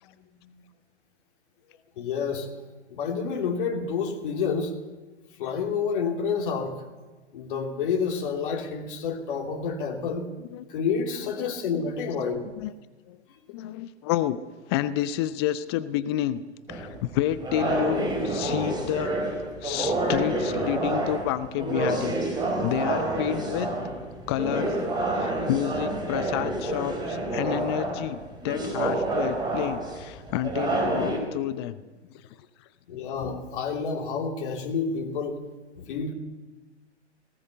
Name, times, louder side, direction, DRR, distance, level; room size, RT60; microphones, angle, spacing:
voice 1, 2.0-2.5 2.9-4.8 5.4-6.8 7.3-10.3 10.7-12.5 32.9-35.4 35.8-36.1, left 5 dB, 45° left, 2 dB, 3.0 m, -29 dB
voice 2, 13.5-14.4 14.7-16.4 16.7-23.7 24.3-31.8 32.1-32.3, left 13 dB, 20° left, 14 dB, 0.6 m, -30 dB
sound 1, 16.7-31.2, right 2 dB, 10° right, 4.3 m, -28 dB
18.5 x 18.5 x 8.1 m, 1.2 s
figure-of-eight pair, 120°, 35 cm